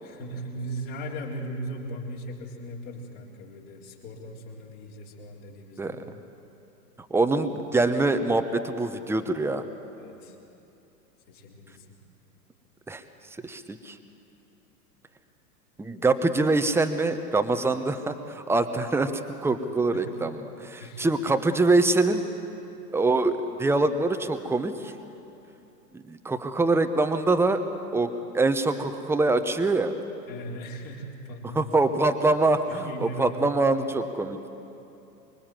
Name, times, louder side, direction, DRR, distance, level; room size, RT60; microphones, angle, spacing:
voice 1, 0.0-6.1 10.0-10.4 11.3-11.9 18.7-18.8 19.9-20.2 20.8-21.1 30.3-31.7 32.7-33.4, right 1 dB, 45° left, -3 dB, 4.0 m, -38 dB
voice 2, 7.1-9.7 12.9-13.0 13.4-14.0 15.8-19.1 19.4-22.2 22.9-24.9 25.9-27.6 27.9-29.9 31.5-34.4, right 2 dB, 5° right, 8 dB, 1.0 m, -24 dB
25.0 x 22.5 x 7.6 m, 2.8 s
figure-of-eight pair, 100°, 49 cm